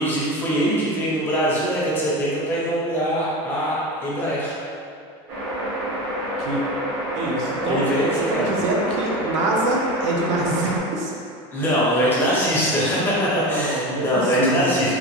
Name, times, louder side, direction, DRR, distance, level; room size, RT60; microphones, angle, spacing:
voice 1, 0.0-4.5 7.6-8.6 11.5-14.9, equal, 15° left, -7 dB, 0.5 m, -22 dB
sound 1, 5.3-10.8, equal, 55° right, 1.0 m, -28 dB
voice 2, 7.1-11.1 13.0-14.9, right 2 dB, 85° right, -2 dB, 0.7 m, -25 dB
3.7 x 2.4 x 3.0 m, 2.5 s
cardioid pair, 180°, 15 cm